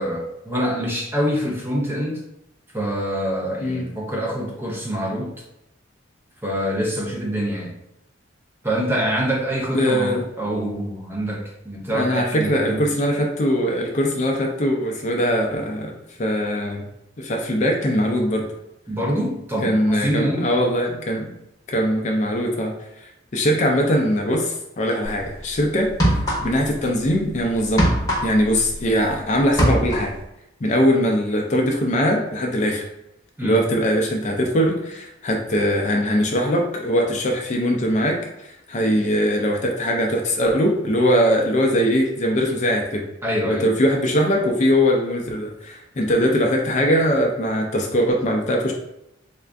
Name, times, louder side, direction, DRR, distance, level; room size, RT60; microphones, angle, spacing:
voice 1, 0.0-2.2 2.7-5.3 6.4-7.7 8.6-12.8 18.9-20.5 33.4-33.6 43.2-43.7, equal, 10° right, -2 dB, 0.6 m, -25 dB
voice 2, 9.7-10.2 11.9-16.8 17.2-18.5 19.6-21.3 21.7-27.9 28.2-30.1 30.6-32.8 33.4-43.0 43.4-48.7, equal, 35° left, 1 dB, 0.4 m, -21 dB
sound 1, 25.0-25.2 25.8-26.8 27.0-29.2 29.4-30.2, equal, 20° left, 0.8 m, -21 dB
3.6 x 2.4 x 3.3 m, 0.86 s
head